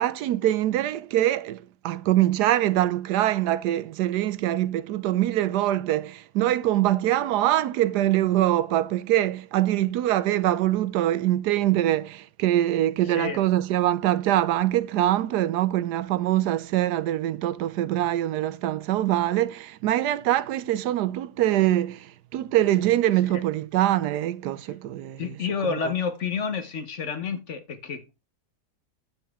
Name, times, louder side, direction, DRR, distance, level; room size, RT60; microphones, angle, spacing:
voice 1, 0.0-25.4, right 13 dB, 80° right, 1.2 m, -24 dB
voice 2, 13.0-13.4 23.3-23.4 25.2-28.1, left 6 dB, 50° left, 1.2 m, -30 dB
9.3 x 7.2 x 3.6 m
omnidirectional pair, 1.7 m